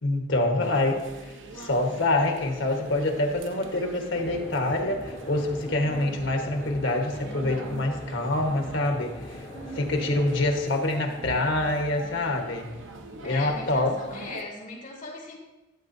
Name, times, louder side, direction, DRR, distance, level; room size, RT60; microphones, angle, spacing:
voice 1, 0.0-1.0 1.5-9.4 9.7-12.7 13.2-13.9, left 2 dB, 80° left, 3 dB, 1.3 m, -26 dB
sound 1, 0.6-14.4, right 2 dB, 85° right, 0.8 m, -43 dB
sound 2, 4.1-10.6, equal, 25° left, 1.0 m, -42 dB
voice 2, 13.2-15.4, left 2 dB, 45° left, -4 dB, 2.5 m, -39 dB
11.5 x 7.2 x 2.7 m, 1.1 s
head